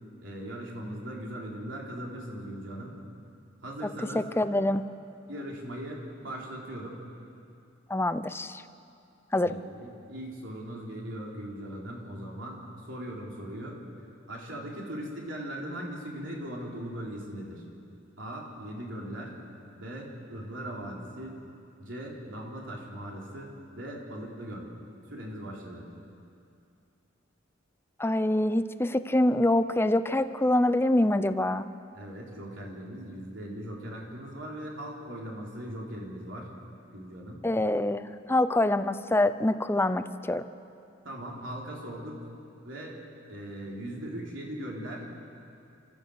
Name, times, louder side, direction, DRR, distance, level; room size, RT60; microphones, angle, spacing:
voice 1, 0.2-2.9 3.6-4.2 5.3-7.0 9.4-13.8 14.3-17.6 18.2-19.3 19.7-21.3 21.8-24.7 25.1-25.8 31.9-36.5 36.9-37.4 41.0-42.2 42.6-43.0 43.3-45.0, right 1 dB, 70° right, -2 dB, 3.9 m, -39 dB
voice 2, 4.1-4.9 7.9-8.6 9.3-9.6 28.0-31.7 37.4-40.5, left 1 dB, 10° left, 12 dB, 0.6 m, -25 dB
28.5 x 13.5 x 8.0 m, 2.5 s
head